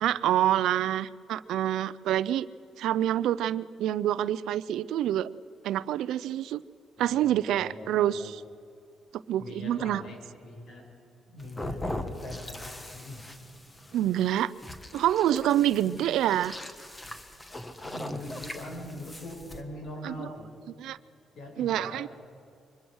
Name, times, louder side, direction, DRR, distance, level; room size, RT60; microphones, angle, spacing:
voice 1, 0.0-2.5 2.8-5.3 5.6-6.6 7.0-8.4 9.3-10.0 13.9-14.5 14.9-16.5 20.0-20.3 20.8-21.0 21.6-22.1, right 12 dB, 85° right, 17 dB, 0.5 m, -27 dB
voice 2, 7.0-8.3 9.4-10.9 11.3-13.3 15.8-16.1 17.8-20.6 21.3-22.1, left 1 dB, 65° left, 3 dB, 5.6 m, -42 dB
sound 1, 11.4-19.6, left 1 dB, 15° left, 1.7 m, -40 dB
24.0 x 20.5 x 6.4 m, 2.5 s
cardioid pair, 90°, 0 cm